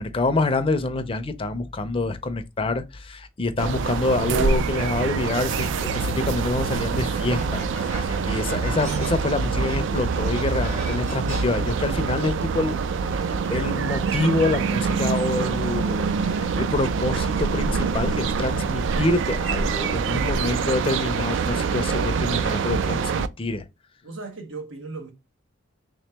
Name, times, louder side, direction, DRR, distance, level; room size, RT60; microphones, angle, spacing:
voice 1, 0.0-12.8 13.5-23.7, left 2 dB, 25° left, 0.5 m, -26 dB
sound 1, 3.6-23.3, right 5 dB, 65° right, 0.3 m, -25 dB
sound 2, 5.6-6.2 6.7-11.4, right 2 dB, 40° right, 1.2 m, -38 dB
voice 2, 8.0-8.4 20.1-20.4 24.0-25.1, right 3 dB, 85° right, 0.9 m, -38 dB
3.4 x 2.9 x 3.3 m
head